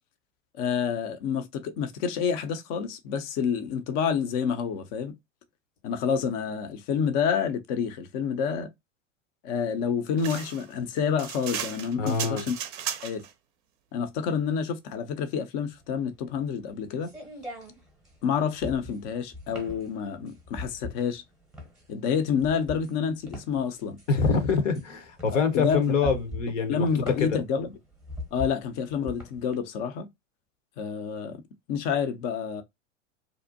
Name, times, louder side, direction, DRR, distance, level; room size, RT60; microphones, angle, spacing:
voice 1, 0.6-5.1 5.8-8.7 9.4-12.6 13.0-13.2 13.9-17.1 18.2-21.2 21.9-24.0 25.5-25.8 26.7-27.7 28.3-30.1 30.8-31.4 31.7-32.6, left 7 dB, 40° left, 0.5 m, -28 dB
sound 1, 10.2-13.3, right 9 dB, 40° right, 0.5 m, -35 dB
voice 2, 12.0-12.4 24.1-26.9 27.2-27.4, left 5 dB, 70° left, 0.8 m, -25 dB
sound 2, 15.7-29.5, left 2 dB, ahead, 0.8 m, -40 dB
2.6 x 2.0 x 2.5 m
figure-of-eight pair, 90°, 39 cm